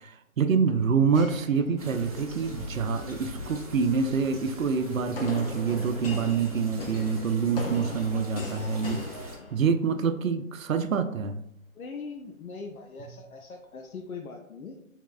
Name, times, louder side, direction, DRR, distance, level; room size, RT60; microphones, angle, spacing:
voice 1, 0.0-9.0 9.5-11.4, right 5 dB, 75° right, 9 dB, 0.5 m, -26 dB
sound 1, 1.1-2.2 2.9-3.4 5.2-10.0, left 2 dB, 45° left, 0.7 m, -39 dB
sound 2, 1.8-9.4, equal, 30° right, 0.7 m, -42 dB
voice 2, 11.8-14.8, left 4 dB, 90° left, 3 dB, 0.7 m, -41 dB
4.3 x 3.5 x 2.4 m, 0.77 s
figure-of-eight pair, 155°, 41 cm